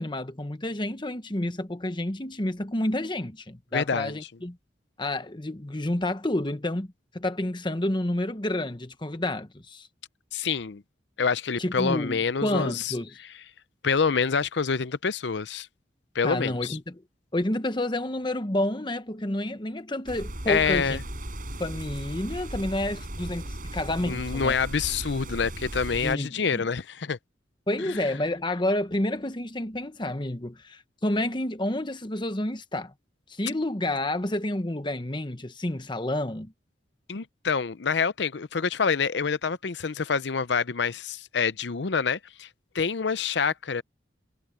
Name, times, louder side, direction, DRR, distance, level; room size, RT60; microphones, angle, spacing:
voice 1, 0.0-4.6 5.0-6.9 7.1-9.9 11.6-13.1 16.2-16.9 17.3-21.0 21.6-24.6 26.0-26.7 27.7-32.9 33.3-36.5, left 1 dB, 25° left, 1.2 m, -29 dB
voice 2, 3.7-4.2 10.3-10.8 11.2-12.9 13.8-15.7 16.1-16.8 20.5-21.0 24.0-27.2 27.8-28.1 37.1-42.5 42.7-43.8, left 5 dB, 70° left, 0.7 m, -27 dB
sound 1, 20.1-26.2, right 1 dB, 45° right, 6.4 m, -36 dB
head